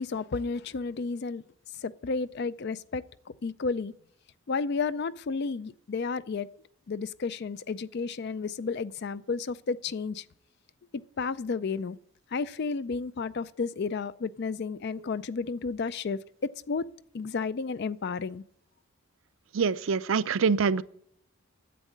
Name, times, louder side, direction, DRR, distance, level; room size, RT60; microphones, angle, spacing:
voice 1, 0.0-1.4 1.8-3.0 3.4-3.9 4.5-6.5 6.9-10.2 11.2-12.0 12.3-16.9 17.1-18.4, left 4 dB, 50° left, 0.4 m, -32 dB
voice 2, 19.5-20.8, right 5 dB, 65° right, 0.5 m, -25 dB
11.0 x 8.1 x 8.5 m
head